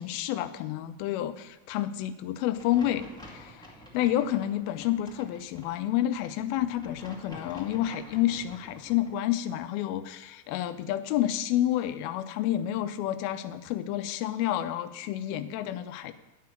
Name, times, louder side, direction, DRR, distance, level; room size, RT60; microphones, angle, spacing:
voice 1, 0.0-3.6 3.9-16.1, left 12 dB, 90° left, 10 dB, 2.5 m, -29 dB
sound 1, 2.5-9.1, equal, 5° left, 0.8 m, -49 dB
11.5 x 5.7 x 8.7 m, 1.1 s
omnidirectional pair, 4.2 m